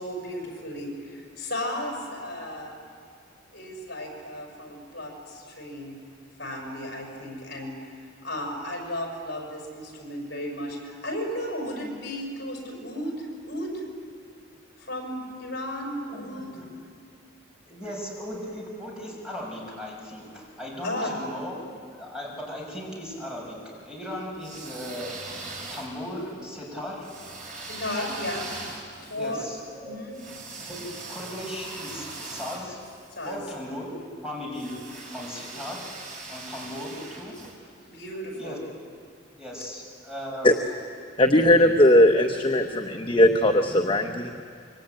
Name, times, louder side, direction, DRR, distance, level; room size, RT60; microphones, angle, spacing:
voice 1, 0.0-2.8 3.5-6.0 6.4-7.7 8.2-13.8 14.8-16.5 20.8-21.1 27.6-28.5 29.0-29.4 29.8-30.2 33.1-33.4 37.9-38.6, left 1 dB, 55° left, 0 dB, 6.5 m, -34 dB
voice 2, 16.1-16.6 17.7-21.5 21.9-25.2 25.7-27.1 29.1-30.0 30.7-32.8 33.2-33.9 34.2-35.9 36.3-37.4 38.4-38.6 39.4-40.5, left 1 dB, 5° right, -3 dB, 6.4 m, -37 dB
sound 1, 24.3-26.2 27.0-33.4 34.5-37.5, right 3 dB, 40° right, 5.0 m, -41 dB
voice 3, 41.2-44.4, left 1 dB, 25° left, 4 dB, 1.0 m, -19 dB
26.0 x 24.0 x 9.1 m, 2.2 s
head